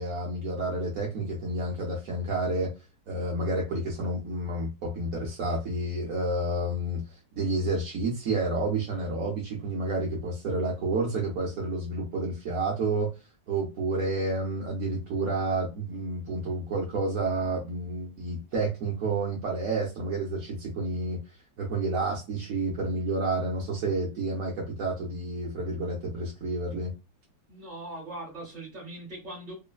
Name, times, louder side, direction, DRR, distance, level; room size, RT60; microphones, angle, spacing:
voice 1, 0.0-2.7 3.1-7.0 7.4-13.1 13.5-21.2 21.6-26.9, right 2 dB, 60° right, 1.0 m, -30 dB
voice 2, 27.5-29.5, right 1 dB, 30° right, 1.1 m, -40 dB
3.1 x 2.0 x 2.2 m
omnidirectional pair, 2.0 m